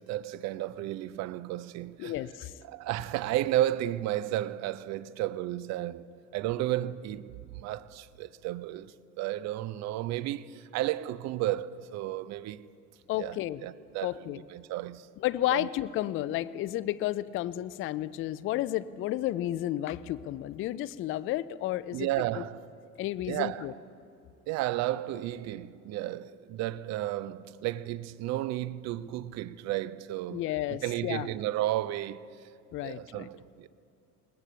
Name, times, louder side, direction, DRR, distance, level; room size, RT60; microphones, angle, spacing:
voice 1, 0.0-2.1 2.6-12.7 13.2-15.1 15.5-15.7 21.9-22.6 23.3-23.7 24.5-30.4 30.8-32.2 32.8-33.7, right 14 dB, 40° right, 0.5 m, -33 dB
voice 2, 2.0-2.5 13.1-13.6 14.0-14.4 15.2-22.1 22.4-22.5 23.0-23.7 30.3-31.3 32.7-33.3, left 14 dB, 30° left, 0.4 m, -32 dB
20.5 x 18.0 x 3.2 m
figure-of-eight pair, 60°, 46 cm